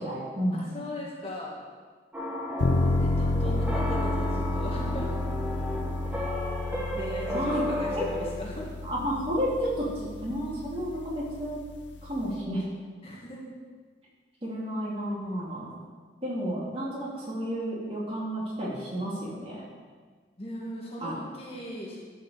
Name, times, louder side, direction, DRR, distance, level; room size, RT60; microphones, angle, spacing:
voice 1, 0.0-0.6 7.3-8.1 8.8-11.6 12.0-12.6 14.4-15.7 16.2-19.6 21.0-21.2, equal, 30° right, -6 dB, 3.2 m, -31 dB
voice 2, 0.5-1.5 2.8-5.2 6.9-8.7 13.0-13.5 20.4-22.0, left 1 dB, 30° left, -4 dB, 2.0 m, -38 dB
sound 1, 2.1-8.3, left 1 dB, 10° right, 1.3 m, -33 dB
sound 2, 2.6-12.3, left 2 dB, 85° left, 0.7 m, -31 dB
12.5 x 5.5 x 7.0 m, 1.5 s
head